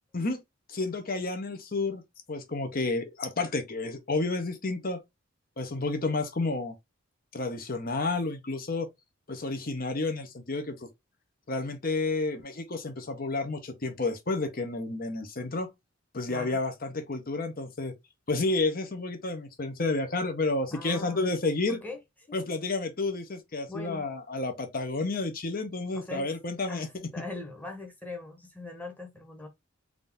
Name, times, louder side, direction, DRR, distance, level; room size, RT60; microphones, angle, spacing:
voice 1, 0.7-2.0 2.3-5.0 5.6-6.7 7.3-8.9 9.3-10.7 11.5-15.7 16.1-17.9 18.3-21.8 22.3-26.9, left 3 dB, 45° left, 0.8 m, -30 dB
voice 2, 16.3-16.6 20.7-21.3 21.7-22.0 22.3-22.4 23.7-24.1 25.9-26.3 26.7-29.5, left 3 dB, 10° left, 1.1 m, -41 dB
3.7 x 2.7 x 3.5 m
head